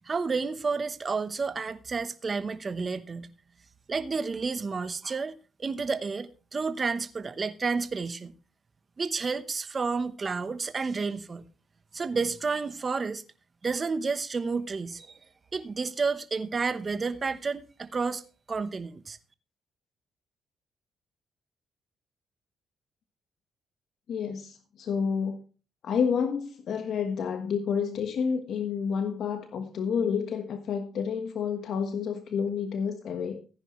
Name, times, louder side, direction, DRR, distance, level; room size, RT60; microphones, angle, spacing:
voice 1, 0.0-3.3 3.9-8.3 9.0-11.4 11.9-13.2 13.6-15.2 15.5-18.2 18.5-19.2, right 4 dB, 35° right, 1.0 m, -30 dB
voice 2, 24.1-25.4 25.8-33.4, left 6 dB, 65° left, 1.3 m, -29 dB
14.5 x 10.0 x 3.2 m
cardioid pair, 90°, 0 cm